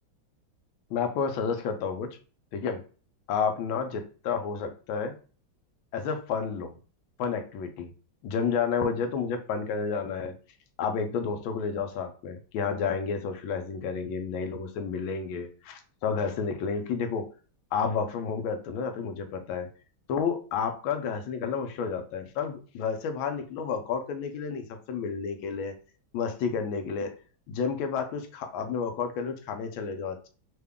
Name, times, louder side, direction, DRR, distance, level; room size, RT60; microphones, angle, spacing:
voice 1, 0.9-2.1 2.5-2.8 3.3-5.1 5.9-6.8 7.2-7.9 8.2-10.3 10.8-17.3 17.7-19.7 20.1-25.8 26.1-27.1 27.5-30.3, left 6 dB, 90° left, 6 dB, 1.4 m, -30 dB
3.5 x 2.2 x 3.5 m, 0.37 s
omnidirectional pair, 2.1 m